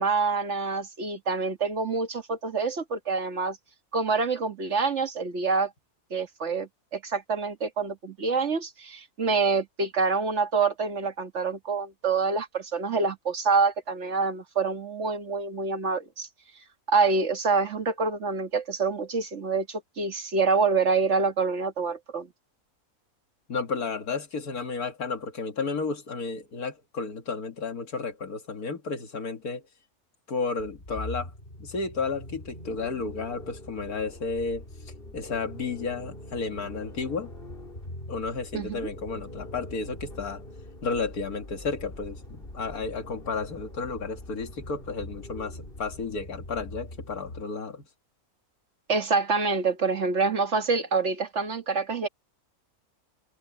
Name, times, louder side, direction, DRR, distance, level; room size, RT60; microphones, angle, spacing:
voice 1, 0.0-3.6 3.9-5.7 6.1-16.3 16.9-22.3 38.5-38.8 48.9-52.1, right 4 dB, 50° right, 2.0 m, -26 dB
voice 2, 23.5-29.6 30.3-31.3 31.6-34.6 35.1-37.3 38.1-40.4 40.8-47.8, left 4 dB, 90° left, 2.4 m, -32 dB
sound 1, 30.6-47.5, left 1 dB, 40° left, 4.6 m, -43 dB
omnidirectional pair, 1.5 m